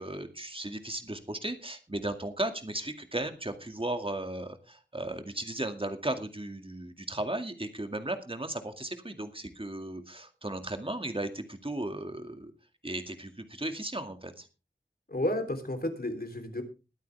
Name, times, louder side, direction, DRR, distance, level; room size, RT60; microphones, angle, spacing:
voice 1, 0.0-12.5 12.8-14.5, right 1 dB, 30° right, 6 dB, 2.1 m, -36 dB
voice 2, 15.1-16.6, left 1 dB, 55° left, 7 dB, 3.4 m, -32 dB
21.5 x 9.2 x 3.4 m, 0.32 s
wide cardioid pair, 40°, 19 cm